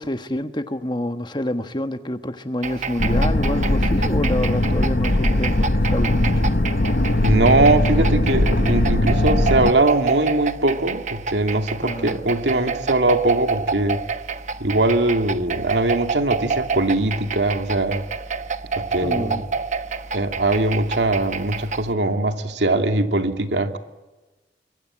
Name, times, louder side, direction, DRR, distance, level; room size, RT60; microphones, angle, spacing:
voice 1, 0.0-6.4 11.8-12.2 19.0-19.5, left 1 dB, 25° left, 8 dB, 1.4 m, -27 dB
sound 1, 2.6-21.9, right 5 dB, 40° right, 1.0 m, -29 dB
sound 2, 3.0-9.7, left 1 dB, 60° left, 1.1 m, -20 dB
voice 2, 7.2-14.0 14.6-18.1 18.8-19.4 20.1-23.8, right 2 dB, 90° right, 6 dB, 2.4 m, -21 dB
26.5 x 22.5 x 8.8 m, 1.2 s
head